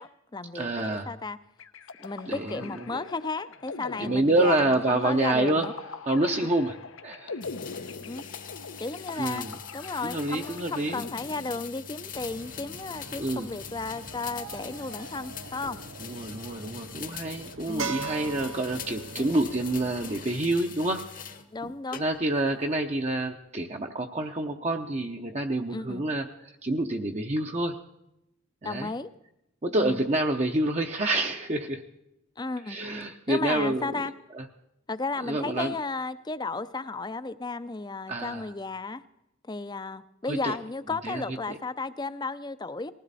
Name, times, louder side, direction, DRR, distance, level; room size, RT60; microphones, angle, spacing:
voice 1, 0.0-1.4 2.0-5.7 8.0-8.2 8.8-9.5 9.7-15.8 17.7-17.9 19.2-19.3 21.5-22.1 25.7-26.0 28.6-29.1 29.8-30.0 32.4-32.8 33.3-34.1 34.9-39.0 39.5-42.9, left 3 dB, 20° left, 13 dB, 0.5 m, -34 dB
voice 2, 0.5-1.1 2.3-3.0 4.0-5.7 6.0-6.8 7.0-7.4 9.2-9.5 10.0-11.0 13.2-13.5 16.0-21.0 21.9-27.8 28.6-28.9 29.6-31.8 32.7-33.9 34.3-34.4 35.3-35.7 38.1-38.5 40.3-40.6 41.0-41.2 41.5-41.6, right 2 dB, 35° right, 3 dB, 0.7 m, -28 dB
sound 1, 1.6-12.0, left 4 dB, 85° left, 0.8 m, -42 dB
sound 2, 7.4-21.5 21.9-22.5, left 8 dB, 40° left, 1.0 m, -43 dB
sound 3, 12.1-20.2, right 4 dB, 80° right, 1.3 m, -41 dB
20.0 x 15.5 x 4.1 m, 0.85 s
head